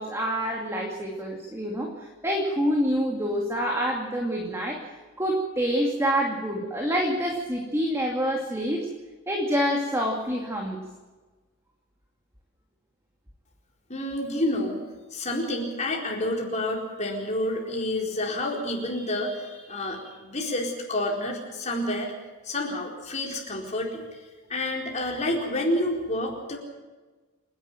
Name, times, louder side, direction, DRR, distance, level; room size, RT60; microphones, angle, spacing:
voice 1, 0.0-8.9 9.3-10.8, equal, 10° right, 0 dB, 2.3 m, -27 dB
voice 2, 13.9-14.8 15.1-22.1 22.4-26.6, left 1 dB, 30° left, 0 dB, 4.4 m, -29 dB
28.0 x 11.0 x 9.0 m, 1.3 s
head